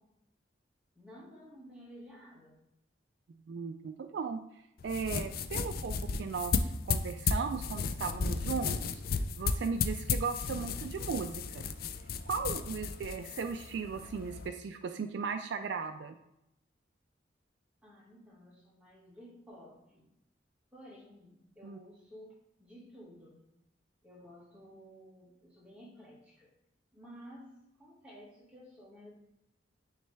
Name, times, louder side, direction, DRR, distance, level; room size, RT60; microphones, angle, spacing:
voice 1, 1.0-2.6 17.8-20.0 20.7-23.4 24.0-26.5 26.9-29.1, equal, 5° right, -6 dB, 1.8 m, -53 dB
voice 2, 3.5-4.4 4.8-9.0 9.4-11.7 12.3-16.2 21.6-21.8, right 5 dB, 65° right, 8 dB, 0.3 m, -37 dB
sound 1, 4.8-14.5, left 5 dB, 50° left, 0.4 m, -34 dB
9.1 x 3.2 x 3.3 m, 0.82 s
head